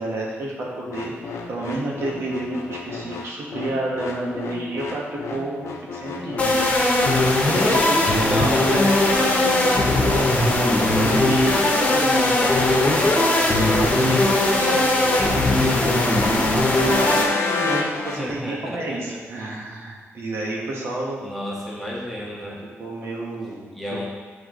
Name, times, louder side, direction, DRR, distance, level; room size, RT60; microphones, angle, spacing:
voice 1, 0.0-6.7 7.5-10.3 10.7-21.2 22.8-23.6 23.9-24.1, right 1 dB, 60° right, -3 dB, 1.4 m, -30 dB
sound 1, 0.9-18.2, left 4 dB, 80° left, 0.7 m, -30 dB
sound 2, 6.4-17.2, left 1 dB, 25° left, 1.0 m, -19 dB
voice 2, 7.8-8.7 18.2-19.2 21.2-22.7 23.7-24.1, left 1 dB, ahead, -4 dB, 0.9 m, -33 dB
8.7 x 3.4 x 3.8 m, 1.4 s
wide cardioid pair, 135°, 5 cm